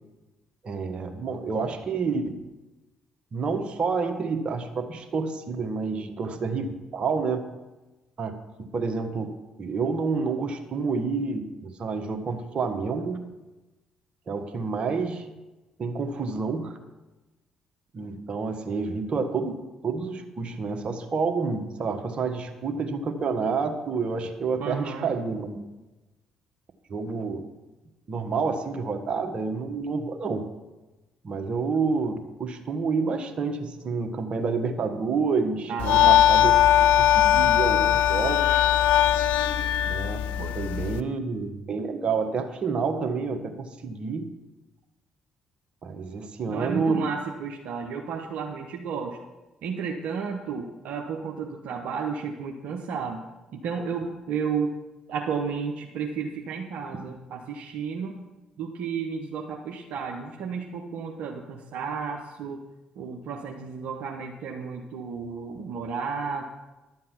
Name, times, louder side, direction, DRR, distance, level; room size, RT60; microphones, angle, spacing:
voice 1, 0.6-2.4 3.3-7.4 8.2-13.2 14.3-15.3 15.8-16.8 17.9-19.6 19.8-25.6 26.9-27.4 28.1-30.4 31.2-36.5 37.0-38.7 39.8-40.3 40.5-44.3 45.8-47.1, right 4 dB, 45° right, 6 dB, 1.4 m, -29 dB
voice 2, 24.6-25.1 35.7-36.2 40.4-40.6 46.5-49.2 49.6-53.2 53.5-54.7 55.1-58.2 58.6-62.6 63.0-66.4, right 6 dB, 65° right, 1 dB, 0.9 m, -32 dB
sound 1, 35.8-41.0, left 11 dB, 70° left, 0.5 m, -20 dB
11.5 x 7.5 x 5.8 m, 1.1 s
hypercardioid pair, 50°, 3 cm